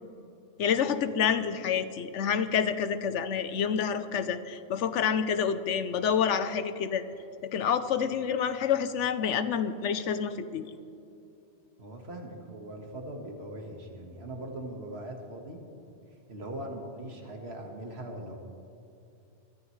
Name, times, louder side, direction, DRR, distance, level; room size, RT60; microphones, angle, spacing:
voice 1, 0.6-7.0 7.4-10.7, left 7 dB, 85° left, 12 dB, 1.0 m, -28 dB
voice 2, 11.8-15.6 16.3-18.4, right 1 dB, 60° right, 2 dB, 1.9 m, -40 dB
22.5 x 14.5 x 3.2 m, 2.8 s
omnidirectional pair, 1.2 m